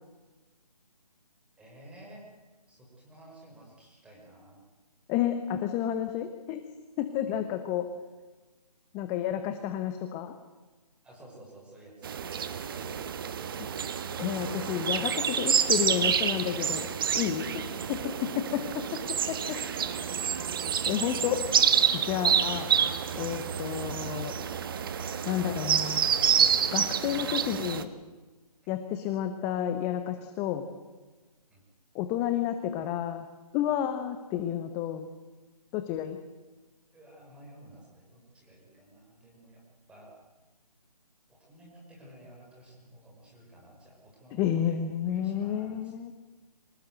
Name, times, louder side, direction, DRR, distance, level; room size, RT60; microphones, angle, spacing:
voice 1, 1.6-2.3 2.7-4.6 7.2-7.4 11.0-13.3 17.3-17.9 18.5-20.8 22.3-22.4 31.5-31.6 36.9-39.6 39.9-40.1 41.3-46.0, right 1 dB, 5° right, -2 dB, 5.6 m, -52 dB
voice 2, 5.1-6.6 7.0-7.9 8.9-10.3 14.2-16.9 17.1-17.4 18.2-18.8 20.9-21.4 21.9-22.7 23.1-24.3 25.3-26.1 26.7-27.9 28.7-30.7 31.9-33.2 33.5-35.1 35.7-36.2 44.3-46.1, left 10 dB, 15° left, 8 dB, 0.9 m, -30 dB
sound 1, 12.0-27.8, right 8 dB, 35° right, 1.3 m, -28 dB
24.5 x 19.5 x 7.9 m, 1.2 s
figure-of-eight pair, 150°, 20 cm